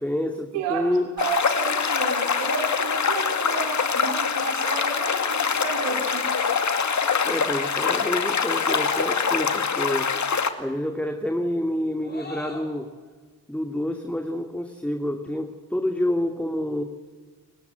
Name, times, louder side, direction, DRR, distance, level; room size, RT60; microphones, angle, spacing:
voice 1, 0.0-1.0 7.2-10.1 10.6-12.9 13.5-16.8, left 1 dB, 5° left, 4 dB, 2.4 m, -28 dB
voice 2, 0.5-6.3, right 6 dB, 90° right, 4 dB, 3.0 m, -32 dB
sound 1, 1.2-10.5, left 6 dB, 45° left, 2.2 m, -24 dB
sound 2, 6.1-7.2 8.9-9.7 12.0-12.8, left 3 dB, 25° left, 5.4 m, -37 dB
30.0 x 19.0 x 8.2 m, 1.5 s
supercardioid pair, 55°, 41 cm